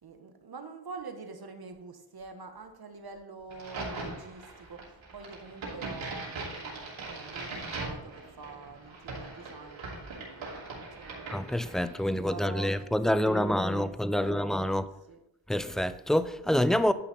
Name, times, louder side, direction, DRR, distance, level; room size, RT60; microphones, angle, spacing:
voice 1, 0.0-6.8 7.1-15.2, right 4 dB, 50° right, 1.4 m, -46 dB
Crack, 3.5-12.1, right 3 dB, 80° right, 3.0 m, -40 dB
voice 2, 11.3-14.9 15.5-16.9, left 1 dB, ahead, 0.4 m, -27 dB
10.5 x 5.7 x 4.1 m
cardioid pair, 70°, 46 cm